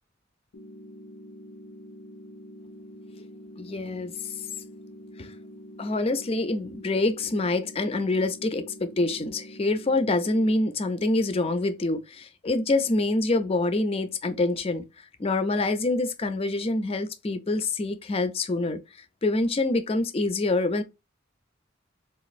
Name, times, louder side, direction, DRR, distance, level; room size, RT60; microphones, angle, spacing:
sound 1, 0.5-10.5, equal, 85° left, 0.5 m, -45 dB
voice 1, 3.6-4.3 5.2-5.3 5.8-14.8 15.2-18.8 19.2-20.8, left 2 dB, 30° left, 0.4 m, -26 dB
4.0 x 2.4 x 2.5 m
head